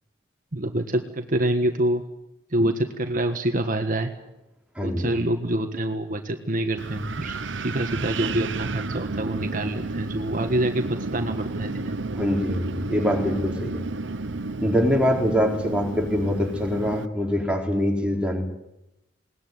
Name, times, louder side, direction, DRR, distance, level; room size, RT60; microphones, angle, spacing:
voice 1, 0.5-2.0 2.5-4.1 4.8-11.9, right 1 dB, 45° right, 6 dB, 1.5 m, -26 dB
voice 2, 4.8-5.1 12.2-13.8 14.6-18.4, equal, 5° right, 0 dB, 4.4 m, -24 dB
Wind, 6.8-17.1, right 3 dB, 80° right, 0.9 m, -32 dB
21.0 x 19.0 x 9.6 m, 0.90 s
head